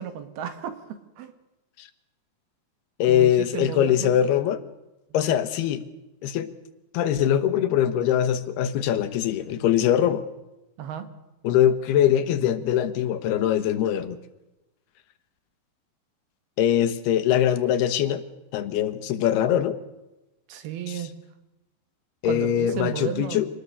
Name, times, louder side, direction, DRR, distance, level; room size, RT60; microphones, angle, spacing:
voice 1, 0.0-1.3 3.1-4.1 5.2-5.4 10.8-11.1 20.5-21.1 22.3-23.5, right 9 dB, 80° right, 10 dB, 3.7 m, -33 dB
voice 2, 3.0-4.6 5.1-5.8 6.2-6.5 6.9-10.2 11.4-14.2 16.6-18.2 18.5-19.8 20.9-21.0 22.2-23.5, left 10 dB, 85° left, 12 dB, 3.2 m, -22 dB
26.0 x 19.5 x 6.8 m, 0.98 s
omnidirectional pair, 4.5 m